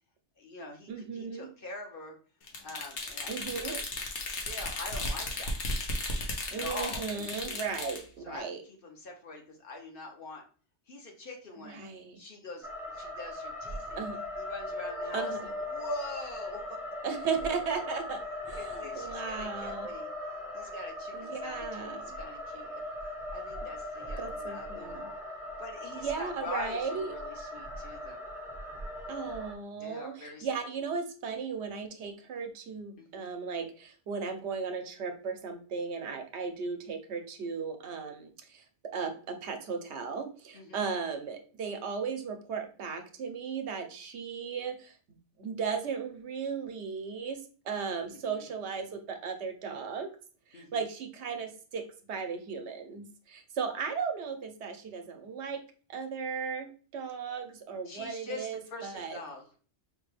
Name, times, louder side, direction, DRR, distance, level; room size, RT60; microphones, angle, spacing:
voice 1, 0.4-2.2 2.6-3.4 3.6-3.8 4.2-5.8 6.5-7.6 8.2-8.4 8.8-10.4 10.9-11.8 12.2-14.0 14.4-16.8 18.6-20.1 20.5-22.8 23.3-25.1 25.6-28.2 29.8-30.5 33.0-33.3 40.5-40.9 48.1-48.5 50.5-50.9 57.9-59.5, left 2 dB, 55° left, 2 dB, 1.0 m, -44 dB
voice 2, 0.9-1.5 3.3-3.7 6.5-8.6 11.6-12.2 14.0-14.2 15.1-15.5 17.0-18.2 18.5-19.9 21.1-22.2 24.2-25.1 26.0-27.1 29.1-38.6 38.9-45.0 45.4-50.1 50.5-51.8 52.1-55.6 55.9-59.2, right 5 dB, 75° right, 6 dB, 1.0 m, -36 dB
sound 1, 2.5-8.0, left 2 dB, 90° left, 1.1 m, -35 dB
sound 2, 12.6-29.5, left 1 dB, 5° right, 0.5 m, -39 dB
5.1 x 2.2 x 3.2 m, 0.39 s
omnidirectional pair, 1.1 m